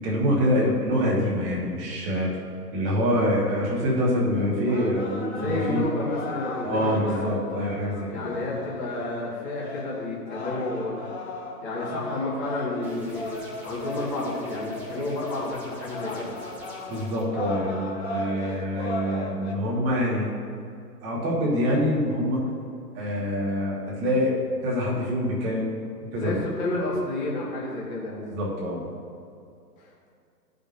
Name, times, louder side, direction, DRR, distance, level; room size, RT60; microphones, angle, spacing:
voice 1, 0.0-2.3 2.7-5.8 6.6-8.4 16.9-20.3 21.0-22.4 22.9-24.3 24.6-25.7 26.1-26.5 28.3-28.8, equal, 25° right, -4 dB, 1.5 m, -25 dB
sound 1, 4.4-19.6, left 2 dB, 40° left, 0.9 m, -37 dB
voice 2, 5.3-7.3 8.1-11.0 11.6-13.4 13.6-16.3 26.1-28.3 29.8-30.1, left 2 dB, 25° left, -4 dB, 1.7 m, -30 dB
sound 2, 12.8-17.2, equal, 5° right, 0.5 m, -46 dB
13.5 x 5.3 x 2.6 m, 2.5 s
figure-of-eight pair, 130°, 50 cm